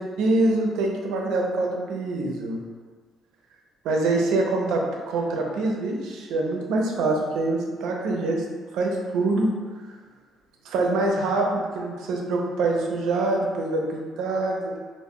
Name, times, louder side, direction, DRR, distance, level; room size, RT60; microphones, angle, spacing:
voice 1, 0.2-2.6 3.8-8.4 8.7-9.5 10.7-14.8, right 2 dB, 85° right, 1 dB, 0.4 m, -25 dB
2.1 x 2.0 x 3.5 m, 1.5 s
cardioid pair, 130°, 0 cm